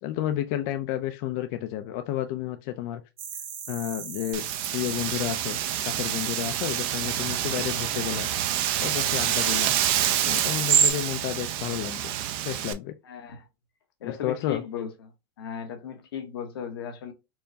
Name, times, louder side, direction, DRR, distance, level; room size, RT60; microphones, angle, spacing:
voice 1, 0.0-3.0 3.7-4.4 4.7-5.6 5.8-8.3 8.8-9.7 10.2-12.0 12.4-12.9 14.0-14.6, left 12 dB, 50° left, 0.4 m, -31 dB
sound 1, 3.2-10.9, right 8 dB, 80° right, 1.3 m, -31 dB
Wind, 4.3-12.7, right 11 dB, 45° right, 0.5 m, -28 dB
voice 2, 13.0-13.4 14.0-15.1 15.4-17.1, left 8 dB, 85° left, 1.1 m, -36 dB
4.4 x 2.1 x 2.7 m
supercardioid pair, 135°, 12 cm